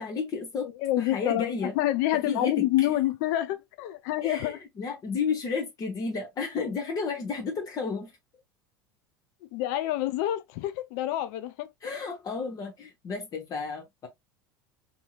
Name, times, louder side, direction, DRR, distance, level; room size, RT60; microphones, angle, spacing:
voice 1, 0.0-0.7 1.0-1.8 2.1-2.9 4.2-8.1 11.8-14.1, left 5 dB, 30° left, 0.8 m, -32 dB
voice 2, 0.8-1.4 1.8-4.6 9.5-11.7, left 14 dB, 50° left, 0.3 m, -27 dB
2.7 x 2.7 x 2.3 m
figure-of-eight pair, 75°, 12 cm